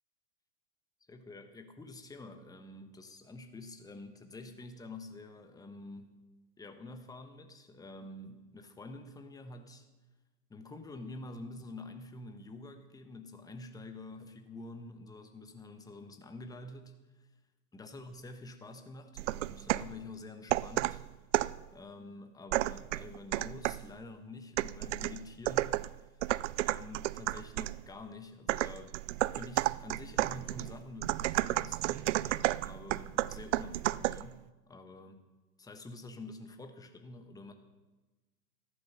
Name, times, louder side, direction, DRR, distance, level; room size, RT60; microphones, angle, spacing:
voice 1, 1.1-6.2 6.6-9.9 10.5-17.3 17.7-21.0 21.7-26.2 26.6-28.9 29.3-35.2 35.6-37.5, left 2 dB, 10° left, 6 dB, 1.2 m, -48 dB
sound 1, 19.2-20.0 20.5-21.6 22.5-23.9 24.6-27.8 28.5-34.3, right 16 dB, 50° right, 0.5 m, -32 dB
14.0 x 11.5 x 5.7 m, 1.2 s
hypercardioid pair, 115°, 48 cm